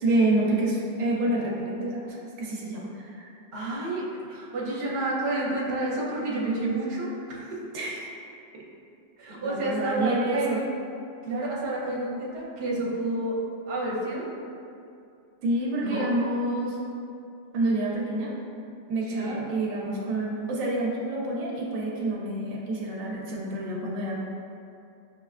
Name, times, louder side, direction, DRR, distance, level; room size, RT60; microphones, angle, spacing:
voice 1, 0.0-3.3 7.7-8.2 8.5-8.6 9.3-10.6 15.4-16.8 17.5-18.3 18.9-24.2, right 1 dB, 85° right, -3 dB, 1.0 m, -28 dB
voice 2, 3.5-7.6 9.2-10.7 11.2-13.4 13.7-14.3 15.8-16.1 19.1-19.4, right 2 dB, 55° right, -6 dB, 1.0 m, -30 dB
6.0 x 2.1 x 2.3 m, 2.5 s
omnidirectional pair, 1.4 m